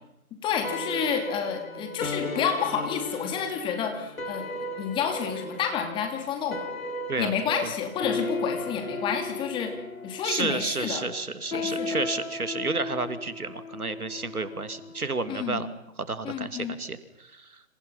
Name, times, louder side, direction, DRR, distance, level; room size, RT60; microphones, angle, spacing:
voice 1, 0.4-6.7 7.2-9.8 10.0-11.1 11.5-12.0 15.3-15.7 16.2-16.8, left 7 dB, 10° left, 6 dB, 2.5 m, -30 dB
sound 1, 0.6-15.1, left 3 dB, 70° left, 4.4 m, -36 dB
voice 2, 10.2-15.7 16.1-17.6, right 3 dB, 90° right, 12 dB, 2.7 m, -31 dB
29.0 x 26.5 x 5.7 m, 0.81 s
figure-of-eight pair, 150°, 43 cm